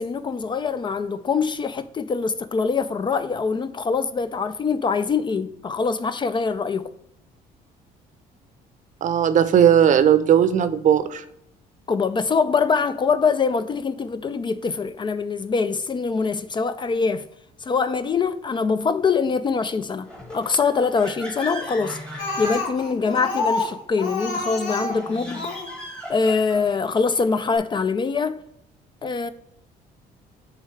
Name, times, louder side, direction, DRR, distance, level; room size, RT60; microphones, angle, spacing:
voice 1, 0.0-6.9 11.9-17.3 17.6-25.5 26.1-28.4 29.0-29.3, left 5 dB, 30° left, 0.3 m, -24 dB
voice 2, 9.0-11.2, right 9 dB, 50° right, 0.6 m, -17 dB
sound 1, 20.1-23.2 24.8-26.8, left 1 dB, 5° left, 1.2 m, -37 dB
Speech, 22.2-25.7 26.7-26.8 27.2-27.3 27.5-27.6, left 3 dB, 50° left, 2.1 m, -28 dB
10.5 x 3.7 x 3.2 m
cardioid pair, 110°, 17 cm